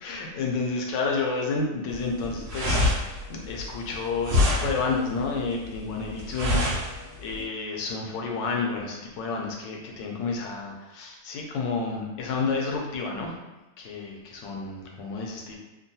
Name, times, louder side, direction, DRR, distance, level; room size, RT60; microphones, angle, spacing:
voice 1, 0.0-13.4 13.8-15.6, left 4 dB, 90° left, 0 dB, 1.3 m, -30 dB
sound 1, 1.9-7.4, left 2 dB, 85° right, 1.4 m, -26 dB
3.6 x 2.2 x 2.7 m, 1.0 s
omnidirectional pair, 1.9 m